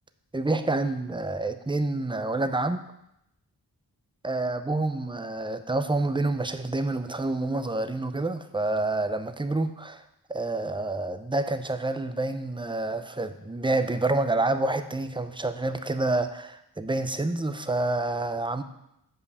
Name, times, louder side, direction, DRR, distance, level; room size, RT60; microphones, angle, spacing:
voice 1, 0.3-2.8 4.2-10.0 10.3-18.6, right 2 dB, 15° right, 9 dB, 0.6 m, -28 dB
7.5 x 5.4 x 6.7 m, 0.83 s
wide cardioid pair, 85°, 39 cm